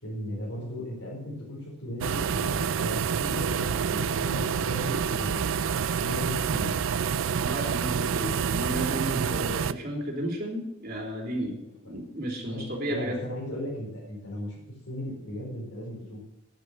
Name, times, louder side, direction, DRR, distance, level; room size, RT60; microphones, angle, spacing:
voice 1, 0.0-5.6 6.0-6.8 12.4-14.6 14.9-16.2, equal, 85° left, -5 dB, 5.0 m, -36 dB
sound 1, 2.0-9.7, right 7 dB, 75° right, 0.4 m, -28 dB
voice 2, 7.3-11.6 11.9-13.2, equal, 45° right, 0 dB, 3.3 m, -33 dB
10.5 x 10.5 x 6.2 m, 0.87 s
head